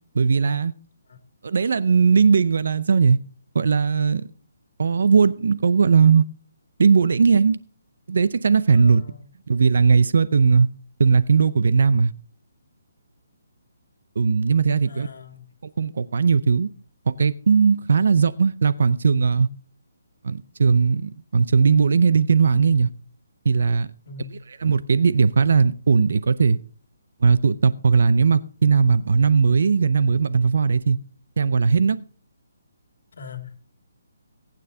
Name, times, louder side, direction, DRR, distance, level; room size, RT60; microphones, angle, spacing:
voice 1, 0.1-0.7 1.4-3.2 3.5-4.3 4.8-6.2 6.8-7.6 8.1-9.0 9.5-10.7 11.0-12.1 14.2-15.1 15.8-16.7 17.1-19.5 20.2-22.9 23.4-23.9 24.6-26.6 27.2-31.0 31.4-32.0, right 5 dB, 60° right, 0.6 m, -18 dB
voice 2, 8.7-9.3 14.9-15.5 24.0-24.3 33.1-33.6, left 5 dB, 65° left, 2.3 m, -41 dB
19.0 x 9.2 x 2.7 m
hypercardioid pair, 170°, 0 cm